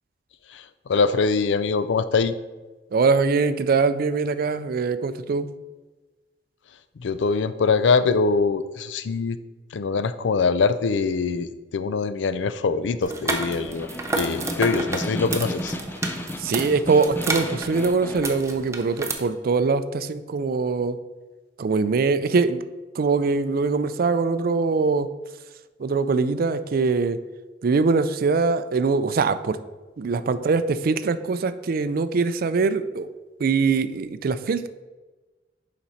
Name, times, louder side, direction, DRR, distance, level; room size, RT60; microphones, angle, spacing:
voice 1, 0.9-2.4 7.0-9.4 9.7-13.9 14.1-15.8, left 4 dB, 80° left, 12 dB, 0.4 m, -23 dB
voice 2, 2.9-5.5 16.4-21.0 21.6-22.6 23.0-25.1 25.8-27.2 27.6-29.6 30.0-33.1 33.4-34.7, right 4 dB, 55° right, 13 dB, 0.4 m, -22 dB
sound 1, 13.0-19.1, right 3 dB, 15° right, 0.7 m, -31 dB
Snare drum, 13.5-18.4, left 1 dB, 10° left, 0.4 m, -33 dB
7.3 x 5.1 x 4.1 m, 1.2 s
head